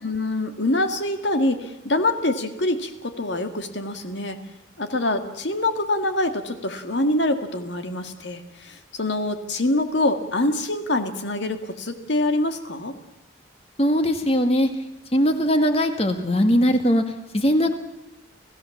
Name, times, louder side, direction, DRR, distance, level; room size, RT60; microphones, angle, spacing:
voice 1, 0.0-4.4 4.8-12.9, left 1 dB, 70° left, 7 dB, 2.1 m, -25 dB
voice 2, 13.8-14.7 15.1-17.0 17.3-17.7, equal, 30° left, 7 dB, 1.9 m, -20 dB
29.5 x 16.0 x 7.3 m, 0.91 s
head